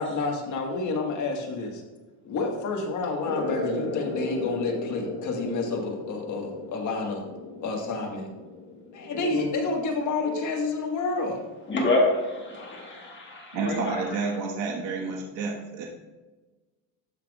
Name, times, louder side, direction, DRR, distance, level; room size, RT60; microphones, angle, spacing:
voice 1, 0.0-1.8 2.2-7.2 7.6-8.3 8.9-11.4, left 3 dB, 40° left, 1 dB, 1.6 m, -29 dB
sound 1, 3.2-10.4, left 2 dB, 75° left, 1.5 m, -36 dB
voice 2, 9.1-9.5 10.2-10.4 11.7-14.2, left 2 dB, 25° left, -2 dB, 1.4 m, -27 dB
voice 3, 13.5-15.9, right 4 dB, 80° right, -1 dB, 1.6 m, -30 dB
13.0 x 5.8 x 2.4 m, 1.2 s
cardioid pair, 165°, 44 cm